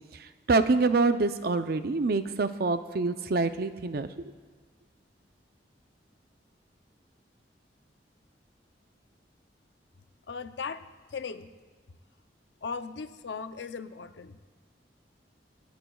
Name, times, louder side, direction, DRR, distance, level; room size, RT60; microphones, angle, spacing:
voice 1, 0.5-4.2, right 3 dB, 60° right, 10 dB, 0.6 m, -26 dB
voice 2, 10.3-10.9 11.1-11.5 12.6-14.5, left 5 dB, 85° left, 10 dB, 0.6 m, -37 dB
26.5 x 9.3 x 2.3 m, 1.4 s
head